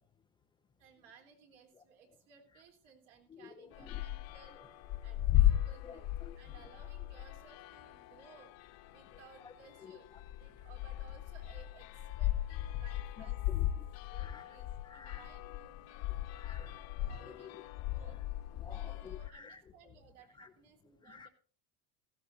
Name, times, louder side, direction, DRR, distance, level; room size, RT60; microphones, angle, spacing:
voice 1, 0.8-6.1 6.3-8.5 8.9-10.1 10.4-13.4 14.1-16.1 16.4-16.6 17.1-18.2 18.6-21.3, right 6 dB, 60° right, 3.5 m, -61 dB
voice 2, 3.3-4.0 5.8-6.4 9.4-9.5 9.8-10.0 13.2-13.9 14.2-14.5 14.8-15.2 16.1-17.5 18.6-19.6 20.4-20.5 21.0-21.3, left 6 dB, 15° left, 0.5 m, -52 dB
sound 1, 3.7-19.3, left 13 dB, 50° left, 1.1 m, -36 dB
16.5 x 14.5 x 2.7 m
cardioid pair, 160°, 34 cm